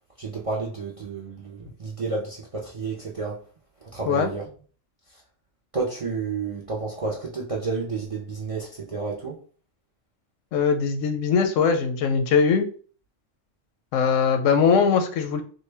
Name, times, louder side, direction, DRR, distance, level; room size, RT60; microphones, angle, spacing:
voice 1, 0.2-3.4 3.8-4.4 5.7-9.4, right 4 dB, 50° right, 0.4 m, -31 dB
voice 2, 10.5-12.6 13.9-15.4, left 6 dB, 90° left, 1.0 m, -21 dB
3.8 x 2.2 x 3.3 m
omnidirectional pair, 1.2 m